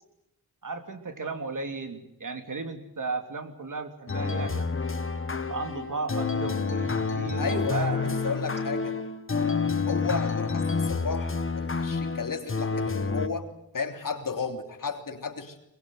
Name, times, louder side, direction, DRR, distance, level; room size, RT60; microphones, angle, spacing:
voice 1, 0.6-4.8 5.5-8.4, right 3 dB, 55° right, 7 dB, 3.2 m, -35 dB
sound 1, 4.1-13.3, left 4 dB, 30° left, 1.8 m, -29 dB
voice 2, 7.4-9.0 9.9-13.5 13.7-15.5, left 5 dB, 55° left, 5 dB, 3.3 m, -33 dB
22.5 x 21.0 x 9.4 m, 0.81 s
wide cardioid pair, 85°, 38 cm